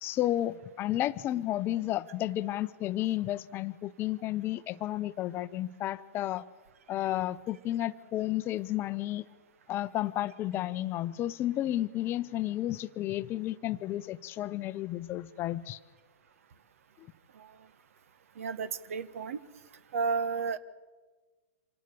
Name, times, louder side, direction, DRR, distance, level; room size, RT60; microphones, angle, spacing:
voice 1, 0.0-6.4 6.9-9.2 9.7-15.8 17.0-17.1, left 14 dB, 30° left, 14 dB, 0.7 m, -32 dB
voice 2, 18.4-19.4 19.9-20.6, right 5 dB, 65° right, 16 dB, 1.3 m, -32 dB
26.5 x 18.0 x 6.8 m, 1.3 s
hypercardioid pair, 115°, 8 cm